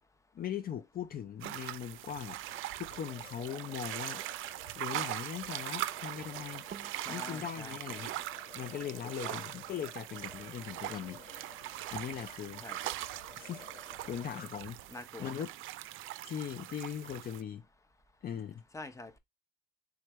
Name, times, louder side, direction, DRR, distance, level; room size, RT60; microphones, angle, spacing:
voice 1, 0.3-4.2 4.8-6.6 7.1-8.1 8.5-11.2 11.9-12.6 13.4-13.7 14.0-14.8 15.2-15.5 16.2-17.7 18.2-18.6, left 9 dB, 50° left, 0.5 m, -40 dB
sound 1, 1.4-3.9 6.2-6.3 6.7-9.5 9.7-10.5 10.8-11.0 11.3-11.4 12.0-12.4, right 7 dB, 50° right, 0.7 m, -55 dB
sound 2, 1.4-17.4, right 15 dB, 90° right, 0.4 m, -41 dB
sound 3, 2.5-14.5, left 3 dB, 85° left, 2.6 m, -55 dB
voice 2, 7.0-8.0 9.2-9.5 12.6-12.9 14.9-15.3 18.7-19.2, left 2 dB, 15° left, 0.8 m, -46 dB
4.7 x 3.3 x 3.0 m
cardioid pair, 90°, 20 cm